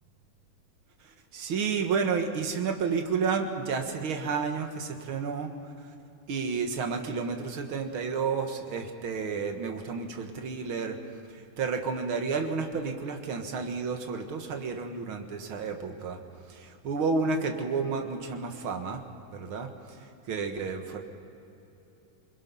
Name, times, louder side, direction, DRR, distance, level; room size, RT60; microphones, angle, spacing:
voice 1, 1.3-5.5 6.3-11.0 11.6-16.2 16.5-19.0 19.3-19.7 20.3-21.0, right 5 dB, 50° right, 4 dB, 2.0 m, -31 dB
29.0 x 21.5 x 5.5 m, 2.9 s
omnidirectional pair, 3.6 m